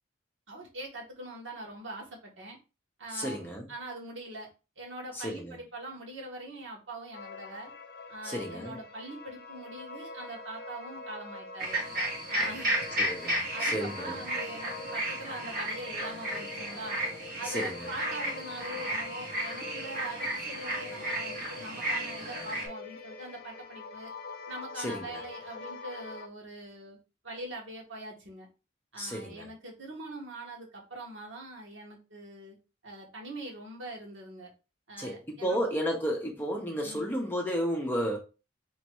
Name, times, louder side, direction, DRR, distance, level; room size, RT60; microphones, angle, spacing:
voice 1, 0.5-2.6 3.0-4.5 4.8-7.7 8.1-11.8 12.3-12.8 13.2-17.0 17.4-24.1 24.5-27.0 27.2-28.5 28.9-32.6 32.8-34.5 34.9-35.6 36.8-37.1, right 2 dB, 70° right, 1.4 m, -43 dB
voice 2, 3.1-3.7 5.1-5.6 8.2-8.8 12.4-12.6 13.0-14.1 17.4-17.9 24.8-25.2 29.0-29.5 35.0-38.2, equal, 10° left, 0.8 m, -33 dB
sound 1, 7.1-26.3, left 3 dB, 50° left, 0.5 m, -44 dB
sound 2, 11.6-22.7, right 1 dB, 45° right, 1.2 m, -34 dB
3.0 x 2.9 x 4.6 m
head